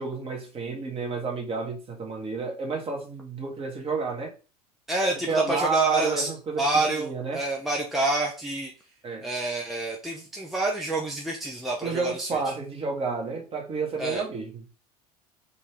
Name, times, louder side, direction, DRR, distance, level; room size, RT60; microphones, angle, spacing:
voice 1, 0.0-4.3 5.3-7.4 9.0-9.3 11.8-14.6, right 4 dB, 30° right, 1.4 m, -30 dB
voice 2, 4.9-6.3 6.6-8.7 9.2-12.5 14.0-14.2, right 2 dB, ahead, 0.6 m, -28 dB
4.1 x 2.7 x 3.2 m
figure-of-eight pair, 70°, 20 cm